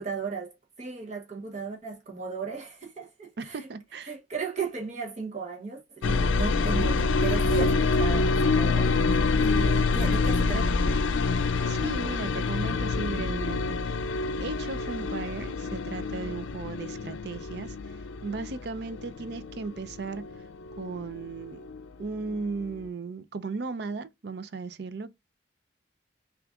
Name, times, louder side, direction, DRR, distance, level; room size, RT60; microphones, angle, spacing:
voice 1, 0.0-3.7 4.0-8.9 9.4-10.8, right 4 dB, 35° right, 0.9 m, -36 dB
voice 2, 3.4-4.1 11.7-14.0 14.4-17.8 18.2-20.2 20.8-21.7 22.0-25.1, right 4 dB, 60° right, 0.5 m, -36 dB
sound 1, 6.0-21.8 22.1-22.9, left 3 dB, 85° left, 0.4 m, -27 dB
5.9 x 2.4 x 2.4 m
head